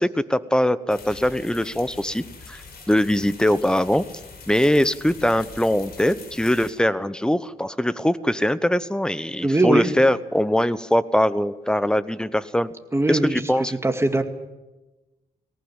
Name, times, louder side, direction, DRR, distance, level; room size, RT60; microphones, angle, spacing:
voice 1, 0.0-2.6 2.9-4.1 4.5-12.7 13.1-13.7, left 1 dB, 5° left, 15 dB, 1.0 m, -22 dB
sound 1, 0.9-6.7, left 4 dB, 75° left, 5.3 m, -43 dB
voice 2, 9.4-9.9 12.9-13.4 13.8-14.2, right 2 dB, 15° right, 6 dB, 2.2 m, -20 dB
19.0 x 18.5 x 9.0 m, 1.1 s
cardioid pair, 85°, 16 cm